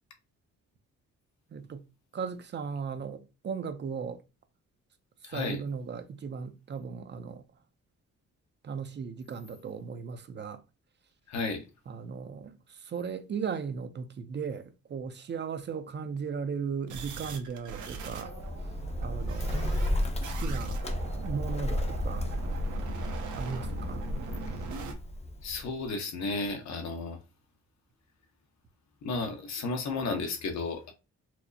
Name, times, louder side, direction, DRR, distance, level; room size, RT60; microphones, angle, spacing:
voice 1, 1.5-1.9 2.1-4.2 5.2-7.4 8.6-10.6 11.9-18.3 18.6-18.7 19.0-20.8 21.2-22.3 23.3-24.1, right 6 dB, 40° right, 0.5 m, -37 dB
voice 2, 5.2-5.6 11.3-11.7 25.4-27.2 29.0-30.9, left 3 dB, 65° left, 0.9 m, -33 dB
sound 1, 16.9-24.9, right 4 dB, 80° right, 0.8 m, -41 dB
Bird, 18.1-25.9, left 1 dB, 20° left, 0.5 m, -33 dB
4.4 x 2.0 x 2.7 m
cardioid pair, 125°, 29 cm